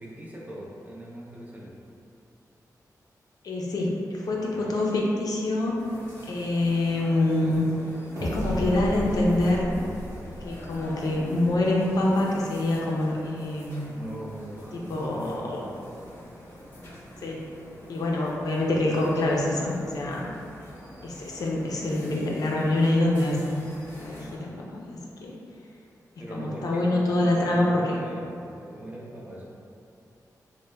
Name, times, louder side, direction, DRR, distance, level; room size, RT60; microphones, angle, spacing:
voice 1, 0.0-1.7 4.3-4.8 13.9-15.8 17.1-17.3 26.2-29.5, right 1 dB, 25° right, -5 dB, 0.5 m, -40 dB
voice 2, 3.4-5.8 6.3-7.6 8.2-9.7 10.4-13.8 14.7-15.6 17.2-17.5 17.9-20.2 21.0-23.6 24.0-25.3 26.3-28.0, left 1 dB, 70° left, -3 dB, 0.5 m, -25 dB
sound 1, 5.8-24.4, equal, 35° left, 0.8 m, -46 dB
sound 2, 8.2-11.8, equal, 55° right, 0.8 m, -34 dB
3.3 x 2.1 x 3.1 m, 2.6 s
wide cardioid pair, 135°, 7 cm